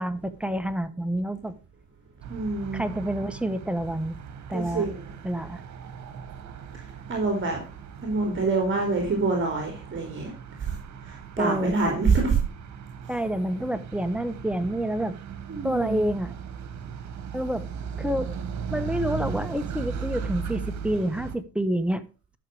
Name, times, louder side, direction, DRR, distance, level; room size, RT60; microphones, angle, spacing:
voice 1, 0.0-1.6 2.7-4.2 4.5-4.9 5.2-5.6 11.4-11.8 12.1-12.2 13.1-15.2 15.6-16.3 17.3-17.7 18.0-18.3 18.7-22.0, right 1 dB, 5° right, 10 dB, 1.2 m, -28 dB
sound 1, 2.2-21.4, right 6 dB, 65° right, 1.8 m, -38 dB
voice 2, 2.3-2.8 4.5-5.1 7.1-7.6 8.0-10.3 10.6-10.8 11.0-12.4 15.5-16.0, right 4 dB, 40° right, 2 dB, 3.2 m, -26 dB
12.0 x 6.7 x 4.9 m, 0.34 s
cardioid pair, 90°, 30 cm